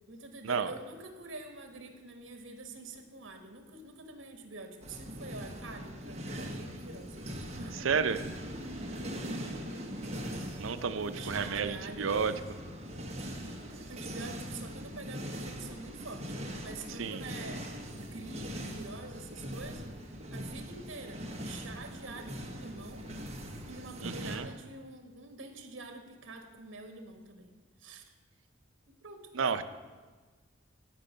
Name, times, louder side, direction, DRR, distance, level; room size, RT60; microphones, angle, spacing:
voice 1, 0.1-7.2 7.6-8.2 9.2-9.6 11.1-12.1 13.9-17.7 18.1-23.1 23.7-27.5 27.8-28.0 28.9-29.6, right 2 dB, 65° right, 5 dB, 1.5 m, -46 dB
sound 1, 4.8-24.4, equal, 35° right, 1.2 m, -41 dB
voice 2, 7.7-8.2 10.6-12.3 17.0-17.2 24.0-24.5 29.3-29.6, right 6 dB, 85° right, 11 dB, 0.6 m, -31 dB
14.0 x 5.4 x 6.6 m, 1.4 s
head